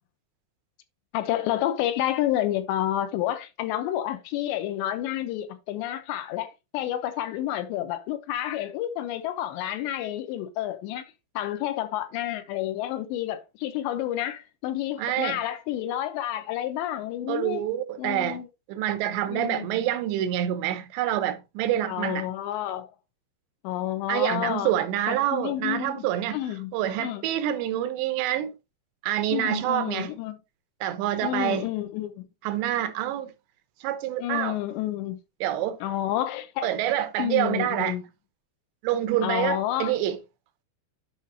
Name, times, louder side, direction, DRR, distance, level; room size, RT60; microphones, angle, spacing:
voice 1, 1.1-17.6 18.0-18.5 19.3-19.7 21.9-22.9 23.6-24.7 25.1-26.1 26.3-27.3 29.3-30.4 31.2-32.3 34.2-35.2 35.8-36.7 37.2-38.0 39.2-40.0, left 13 dB, 80° left, 3.1 m, -30 dB
voice 2, 15.0-15.4 17.3-18.4 18.7-22.3 24.1-26.4 26.7-28.5 29.0-30.1 30.8-31.7 32.4-33.3 33.8-34.6 35.4-35.8 36.6-37.9 38.8-40.2, right 12 dB, 85° right, 3.0 m, -27 dB
10.5 x 5.0 x 2.8 m
omnidirectional pair, 5.1 m